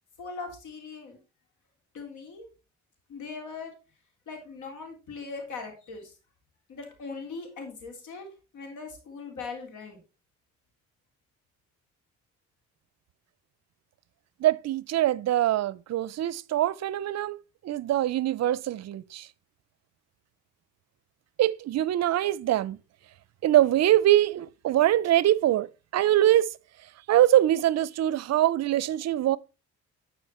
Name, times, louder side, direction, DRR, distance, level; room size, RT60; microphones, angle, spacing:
voice 1, 0.2-1.2 1.9-2.5 3.1-3.7 4.3-6.1 6.7-10.0, left 4 dB, 80° left, 3.4 m, -40 dB
voice 2, 14.4-17.4 17.6-19.3 21.4-22.8 23.4-26.5 27.1-29.4, right 13 dB, 60° right, 0.5 m, -23 dB
11.0 x 4.8 x 4.2 m
cardioid pair, 90°, 30 cm